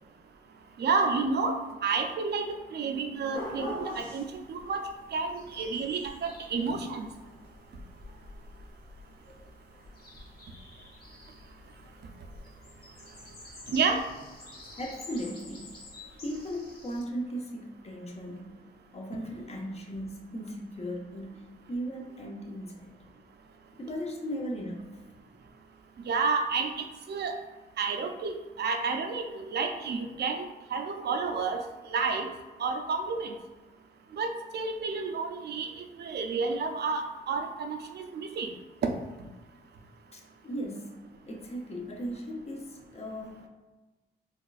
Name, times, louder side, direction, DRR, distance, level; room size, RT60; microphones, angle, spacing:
voice 1, 0.8-1.6 1.8-2.4 2.7-4.8 5.1-7.1 13.7-14.0 26.1-26.7 27.1-27.3 27.8-30.4 30.7-31.6 31.9-32.3 32.6-33.3 34.2-35.7 36.0-38.5, right 4 dB, 60° right, 4 dB, 0.5 m, -30 dB
sound 1, 3.3-17.0, left 1 dB, 55° left, 1.2 m, -46 dB
voice 2, 14.8-15.8 16.2-18.7 18.9-22.9 23.7-24.8 40.1-41.0 41.3-43.5, equal, 35° left, 1 dB, 0.7 m, -37 dB
4.2 x 2.4 x 2.4 m, 1.2 s
cardioid pair, 75°, 19 cm